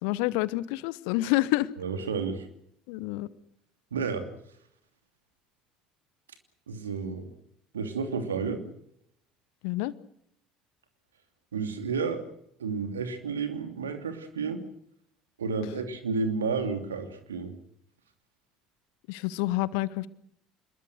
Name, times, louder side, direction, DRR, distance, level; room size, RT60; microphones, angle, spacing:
voice 1, 0.0-1.7 2.9-3.3 9.6-9.9 19.1-20.1, left 18 dB, 65° left, 19 dB, 1.0 m, -28 dB
voice 2, 1.8-2.5 3.9-4.3 6.7-7.3 7.7-8.6 11.5-12.2 12.6-14.6 15.4-17.5, right 5 dB, 75° right, 7 dB, 2.9 m, -31 dB
27.0 x 21.5 x 6.4 m, 0.73 s
figure-of-eight pair, 60°, 0 cm